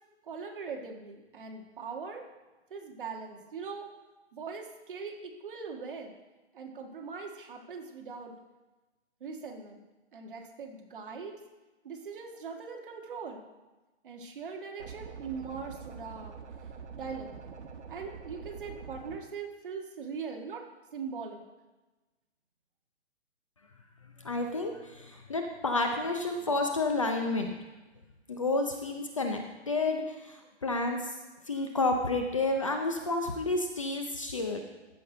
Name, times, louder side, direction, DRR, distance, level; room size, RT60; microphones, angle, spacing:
voice 1, 0.2-2.2 2.7-3.9 4.3-6.1 6.5-8.3 9.2-9.8 10.1-11.4 11.8-13.4 14.0-16.4 16.9-17.3 17.9-20.6 20.9-21.4, right 5 dB, 50° right, 2 dB, 1.5 m, -41 dB
sound 1, 14.8-19.2, right 6 dB, 80° right, 1.4 m, -45 dB
voice 2, 24.2-27.5 28.3-31.1 31.5-34.6, left 2 dB, 30° left, 4 dB, 0.5 m, -30 dB
14.0 x 6.0 x 3.8 m, 1.1 s
hypercardioid pair, 175°, 34 cm